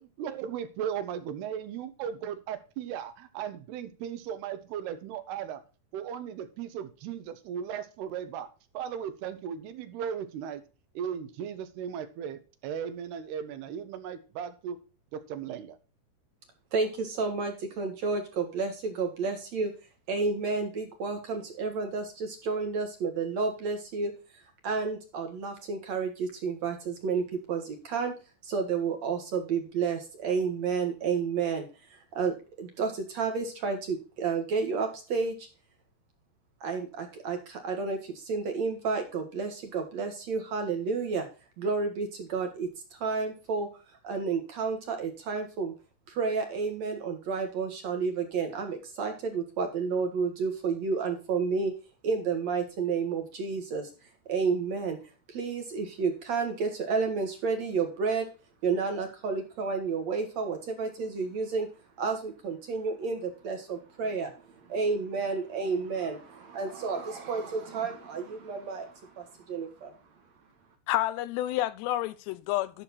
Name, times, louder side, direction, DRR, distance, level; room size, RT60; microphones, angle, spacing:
voice 1, 0.0-5.6 5.9-10.6 11.0-14.8 15.1-15.8, right 8 dB, 80° right, 3.0 m, -37 dB
voice 2, 16.7-19.7 20.1-24.1 24.6-28.1 28.4-31.7 31.9-35.5 36.6-41.3 41.6-42.7 43.0-43.7 44.0-45.7 46.1-51.7 52.0-53.9 54.3-55.0 55.3-58.3 58.6-61.7 62.0-64.3 64.7-69.9, right 5 dB, 55° right, 2.0 m, -31 dB
voice 3, 70.9-72.8, left 14 dB, 90° left, 2.9 m, -29 dB
11.5 x 6.4 x 4.2 m
omnidirectional pair, 4.8 m